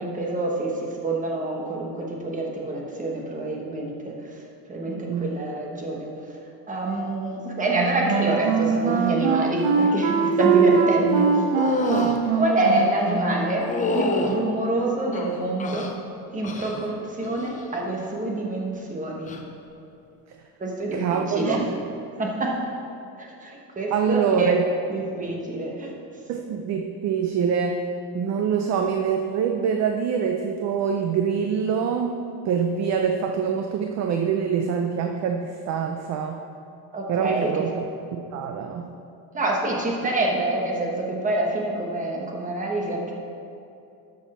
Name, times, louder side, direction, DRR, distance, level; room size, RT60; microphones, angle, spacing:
voice 1, 0.0-4.1 4.7-6.1 6.7-11.3 12.3-15.9 16.3-19.3 20.6-21.6 22.2-22.6 23.2-24.5 24.9-26.0 36.9-37.6 39.3-43.1, right 2 dB, 15° right, -1 dB, 1.1 m, -26 dB
voice 2, 4.9-5.3 20.9-21.7 23.9-24.6 26.3-27.9 28.1-36.4 37.1-38.9, right 6 dB, 40° right, 4 dB, 0.4 m, -25 dB
Wind instrument woodwind instrument, 7.7-13.6, right 5 dB, 75° right, 1.0 m, -22 dB
sound 1, 11.5-12.2 13.6-14.4 15.1-15.9 16.4-16.9 17.2-17.7 19.2-19.4, left 2 dB, 15° left, 0.5 m, -27 dB
12.0 x 6.3 x 4.2 m, 2.7 s
cardioid pair, 165°, 46 cm